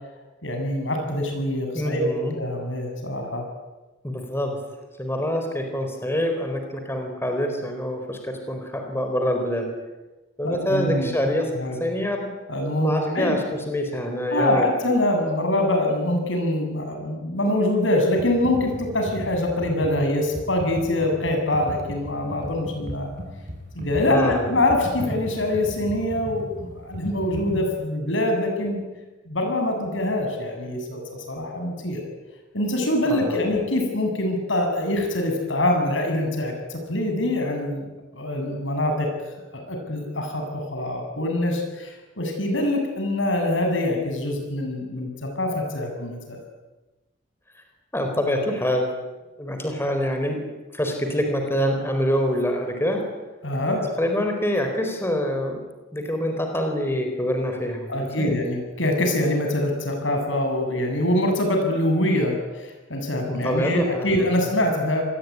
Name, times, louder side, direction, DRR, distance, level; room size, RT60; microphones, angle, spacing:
voice 1, 0.4-3.5 10.4-11.1 11.5-11.8 12.5-13.4 14.3-23.1 23.7-28.8 29.3-32.0 32.5-39.1 39.5-46.4 53.4-53.9 57.9-65.0, left 1 dB, 80° left, 4 dB, 7.8 m, -24 dB
voice 2, 1.7-2.4 4.0-4.6 5.0-9.7 10.4-11.5 11.8-12.3 12.8-14.7 24.1-24.5 33.1-33.4 47.9-48.9 49.4-50.4 50.7-53.0 54.0-55.6 55.9-58.4 63.3-64.4, equal, 15° left, 4 dB, 4.4 m, -25 dB
Computer keyboard, 18.2-27.6, equal, 45° right, 7.8 m, -36 dB
26.5 x 21.0 x 9.7 m, 1.1 s
head